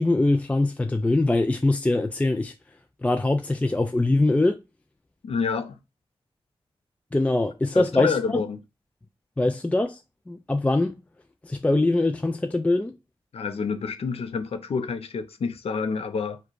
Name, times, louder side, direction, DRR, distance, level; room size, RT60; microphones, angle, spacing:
voice 1, 0.0-2.5 3.0-4.6 7.1-8.4 9.4-10.0 10.3-11.0 11.4-12.9, left 2 dB, 15° left, 0.4 m, -23 dB
voice 2, 5.2-5.8 7.7-8.6 13.3-16.4, left 5 dB, 80° left, 0.6 m, -28 dB
4.8 x 2.2 x 4.6 m
wide cardioid pair, 115°, 10 cm